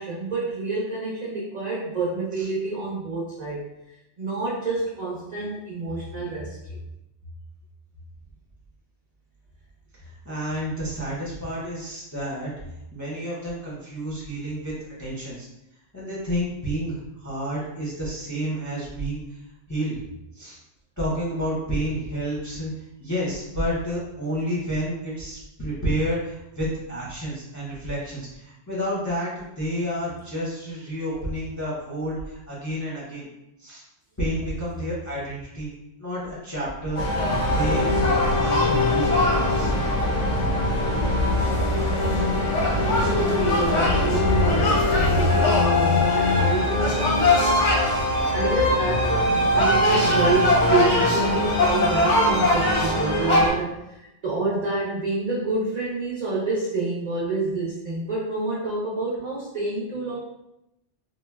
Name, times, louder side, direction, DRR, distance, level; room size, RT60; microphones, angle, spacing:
voice 1, 0.0-3.6 4.2-6.8 42.8-47.8 48.3-60.2, right 3 dB, 50° right, -6 dB, 0.5 m, -28 dB
voice 2, 9.9-12.5 12.9-14.7 15.0-15.5 15.9-19.2 19.7-20.0 20.3-20.6 21.0-22.7 23.0-33.3 33.6-33.8 34.2-35.7 36.0-37.0 37.5-39.7, equal, 25° left, -7 dB, 0.4 m, -30 dB
sound 1, 37.0-53.5, left 2 dB, 90° left, 1.0 m, -21 dB
3.7 x 2.0 x 2.2 m, 0.87 s
omnidirectional pair, 1.2 m